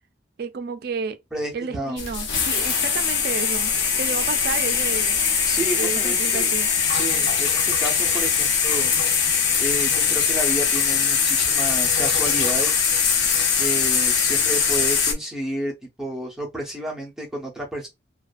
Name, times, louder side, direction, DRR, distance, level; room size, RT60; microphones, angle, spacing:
voice 1, 0.4-1.2 1.5-5.2 5.7-6.7, right 5 dB, 55° right, 0.4 m, -31 dB
voice 2, 1.3-2.0 5.4-6.5 6.9-8.9 9.6-12.9 13.6-15.7 16.0-17.9, right 1 dB, 5° right, 0.6 m, -31 dB
sound 1, 2.0-15.1, left 6 dB, 75° left, 0.6 m, -21 dB
2.4 x 2.2 x 2.4 m
head